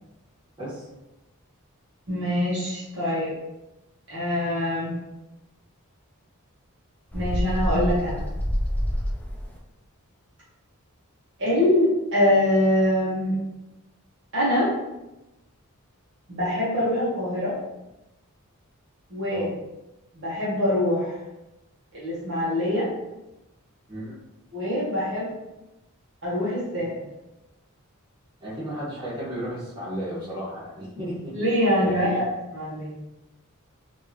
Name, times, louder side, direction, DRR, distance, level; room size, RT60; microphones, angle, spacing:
voice 1, 2.1-3.3 4.1-4.9 7.1-8.2 11.4-13.4 14.3-14.7 16.3-17.5 19.1-19.5 20.1-21.2 21.9-22.9 24.5-25.3 26.2-26.9 31.3-32.2 32.5-32.9, left 1 dB, 55° right, -8 dB, 1.1 m, -24 dB
Bird, 7.1-9.6, equal, 5° left, 0.3 m, -27 dB
voice 2, 28.4-31.3 31.8-32.2, equal, 20° right, -10 dB, 1.5 m, -33 dB
3.2 x 2.6 x 3.0 m, 0.97 s
head